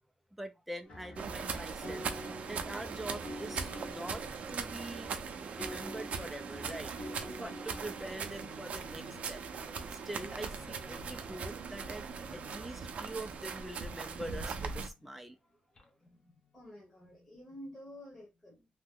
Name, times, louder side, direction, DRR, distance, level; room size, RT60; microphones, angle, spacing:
voice 1, 0.4-5.1 5.5-9.4 9.9-12.0 12.3-15.4 15.8-15.9, right 1 dB, 5° right, 0.3 m, -44 dB
sound 1, 0.8-8.1, left 1 dB, 65° left, 1.3 m, -47 dB
sound 2, 1.2-14.9, right 5 dB, 65° right, 0.5 m, -40 dB
sound 3, 7.6-16.6, left 5 dB, 40° left, 0.8 m, -58 dB
voice 2, 16.0-18.7, equal, 15° left, 1.1 m, -51 dB
2.9 x 2.1 x 3.5 m
wide cardioid pair, 140°, 3 cm